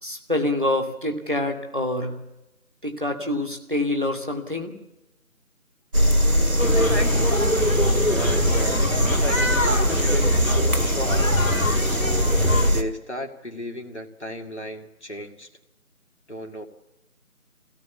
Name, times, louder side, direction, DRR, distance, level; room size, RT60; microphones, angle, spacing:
voice 1, 0.0-2.2 2.8-4.7, left 1 dB, 35° right, 4 dB, 2.5 m, -26 dB
sound 1, 5.9-12.8, equal, 80° right, 2.3 m, -22 dB
voice 2, 6.2-7.4 8.1-11.3 12.2-15.5 16.3-16.6, equal, 50° left, 2 dB, 2.2 m, -35 dB
sound 2, 6.6-12.7, left 1 dB, 65° left, 1.7 m, -24 dB
23.0 x 17.5 x 8.3 m, 0.98 s
figure-of-eight pair, 180°, 44 cm